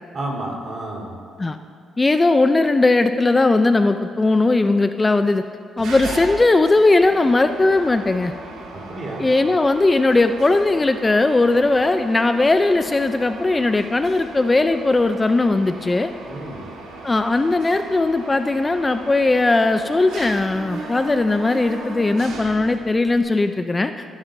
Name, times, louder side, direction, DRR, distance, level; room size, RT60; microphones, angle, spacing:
voice 1, 0.1-1.2 8.7-9.3 16.2-16.7, right 1 dB, 45° right, -3 dB, 3.6 m, -31 dB
voice 2, 2.0-5.5 5.8-8.3 9.2-16.1 17.0-24.0, left 2 dB, 20° left, 9 dB, 0.4 m, -18 dB
Mechanisms, 5.8-23.2, right 2 dB, 85° right, 2.1 m, -37 dB
22.5 x 10.5 x 2.6 m, 2.2 s
cardioid pair, 90°, 0 cm